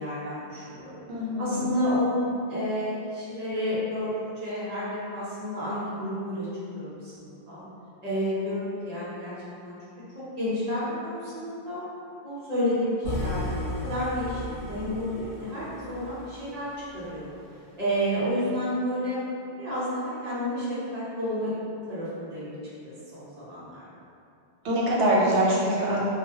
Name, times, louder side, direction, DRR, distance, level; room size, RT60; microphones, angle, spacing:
voice 1, 0.0-0.9 1.4-2.2 2.5-4.1 4.4-6.5 6.7-7.6 8.0-9.3 9.6-9.8 10.1-11.8 12.2-17.3 17.8-19.2 19.6-21.5 21.9-22.5 22.8-23.8, equal, 45° right, -10 dB, 0.7 m, -30 dB
voice 2, 1.1-1.7 24.6-26.0, right 1 dB, 90° right, -5 dB, 0.9 m, -24 dB
sound 1, 13.0-17.2, left 1 dB, 70° left, 1.0 m, -35 dB
2.3 x 2.1 x 2.6 m, 2.6 s
omnidirectional pair, 1.1 m